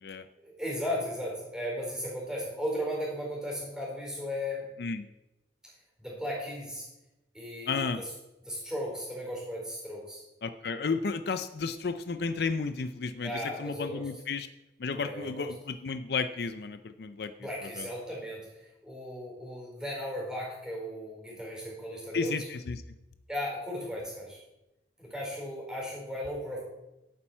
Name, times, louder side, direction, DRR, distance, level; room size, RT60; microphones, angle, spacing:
voice 1, 0.4-4.7 6.0-6.9 7.3-8.1 8.5-10.2 13.2-14.1 15.0-15.5 17.4-22.3 23.3-24.4 25.0-26.6, equal, 5° right, -3 dB, 4.5 m, -36 dB
voice 2, 7.7-8.0 10.4-14.5 14.8-17.3 17.7-17.9 22.1-22.8, left 4 dB, 60° left, 10 dB, 0.5 m, -32 dB
12.0 x 8.6 x 4.5 m, 0.98 s
head